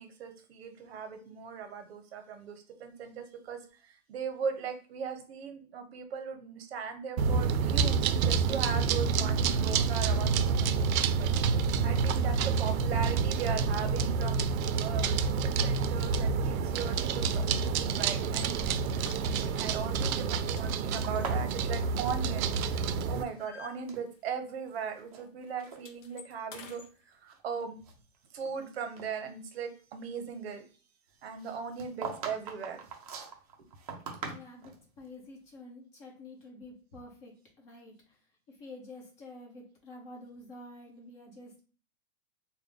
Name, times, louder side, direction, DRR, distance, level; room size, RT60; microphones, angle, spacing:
voice 1, 0.0-11.3 11.8-14.4 14.8-18.6 19.3-22.5 23.1-27.8 28.3-30.6 31.2-32.8, right 6 dB, 50° right, 7 dB, 0.8 m, -38 dB
sound 1, 7.2-23.2, right 5 dB, 80° right, 0.5 m, -28 dB
sound 2, 18.3-18.5 19.0-19.7 20.1-20.3 20.6-22.6 22.9-24.4 24.7-24.9 25.2-26.9, left 5 dB, 60° left, 0.8 m, -51 dB
sound 3, 21.0-23.0 23.3-24.1 24.7-25.3 25.6-25.8 26.5-26.6 27.1-28.6 29.0-29.1 31.4-34.8, right 6 dB, 30° right, 0.5 m, -42 dB
voice 2, 34.2-38.2 38.5-41.6, left 2 dB, 25° left, -1 dB, 1.0 m, -49 dB
3.5 x 2.2 x 3.5 m, 0.38 s
supercardioid pair, 170°, 41 cm